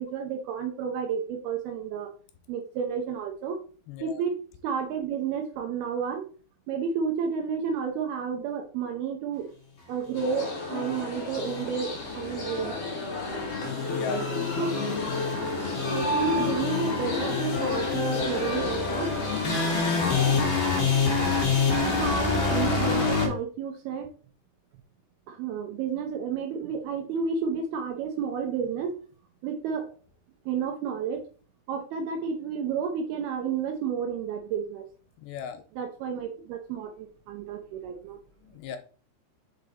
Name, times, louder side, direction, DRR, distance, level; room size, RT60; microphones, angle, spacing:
voice 1, 0.0-2.1 2.5-3.6 4.0-4.4 4.6-6.3 6.7-9.5 9.9-12.8 14.6-14.8 15.6-19.1 21.0-21.2 21.8-24.1 25.3-28.9 29.4-29.9 30.5-31.2 31.7-34.9 35.8-38.2, right 6 dB, 75° right, 4 dB, 2.4 m, -31 dB
voice 2, 3.9-4.2 13.7-14.3 20.0-20.2 35.2-35.6 38.4-38.8, left 7 dB, 85° left, 7 dB, 2.7 m, -37 dB
sound 1, 10.1-20.4, left 3 dB, 45° left, 2.3 m, -31 dB
sound 2, 10.9-23.3, left 4 dB, 60° left, 1.2 m, -28 dB
5.8 x 4.9 x 3.9 m, 0.39 s
omnidirectional pair, 5.1 m